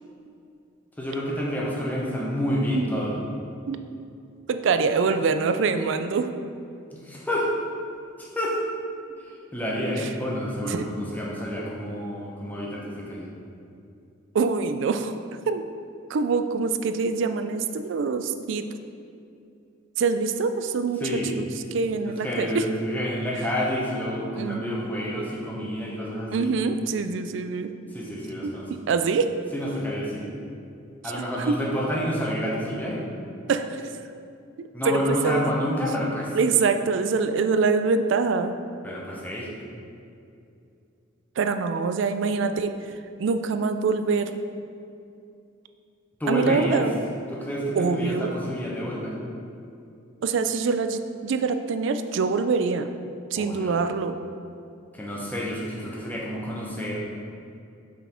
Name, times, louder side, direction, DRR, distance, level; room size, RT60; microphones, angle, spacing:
voice 1, 1.0-3.2 6.9-7.5 8.2-8.6 9.5-13.3 21.0-21.4 22.1-26.5 27.9-28.7 29.5-30.3 31.0-33.0 34.7-36.3 38.8-39.5 46.2-46.8 47.3-49.1 53.4-53.7 54.9-57.0, equal, 10° left, -4 dB, 0.9 m, -29 dB
voice 2, 4.5-6.3 10.0-10.1 10.6-10.8 14.3-15.1 15.5-15.6 16.1-18.6 20.0-21.0 21.4-21.5 21.7-22.7 24.4-24.6 26.3-27.7 28.4-28.5 28.9-29.3 31.5-31.6 33.5-33.8 34.6-35.5 36.4-38.5 41.4-42.7 43.2-44.3 46.3-47.0 47.8-48.3 50.2-52.9 53.3-54.1, right 4 dB, 65° right, 9 dB, 0.3 m, -24 dB
5.7 x 4.2 x 4.3 m, 2.6 s
head